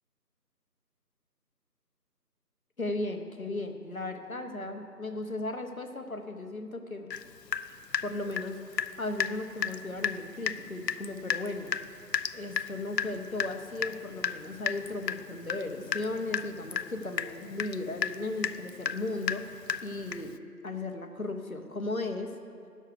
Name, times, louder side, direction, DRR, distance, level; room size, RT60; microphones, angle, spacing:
voice 1, 2.8-7.1 8.0-11.7 12.3-20.4 20.6-22.3, left 2 dB, 55° left, 5 dB, 1.0 m, -36 dB
Water tap faucet / Drip, 7.1-7.2 7.5-8.9 9.2-9.3 9.6-9.8 10.0-10.2 10.5-10.6 10.9-20.4, left 7 dB, 80° left, 0.6 m, -33 dB
10.5 x 6.5 x 6.6 m, 2.3 s
figure-of-eight pair, 170°, 49 cm